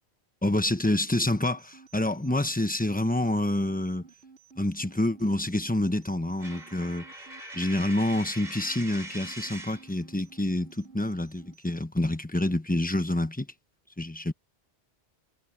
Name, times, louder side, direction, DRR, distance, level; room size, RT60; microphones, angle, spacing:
voice 1, 0.4-4.0 4.6-7.0 7.5-13.5 14.0-14.3, left 1 dB, 10° left, 1.0 m, -27 dB
sound 1, 0.7-11.7, right 5 dB, 90° right, 4.2 m, -54 dB
Coin (dropping), 6.4-9.9, right 1 dB, 40° right, 3.7 m, -42 dB
omnidirectional pair, 1.1 m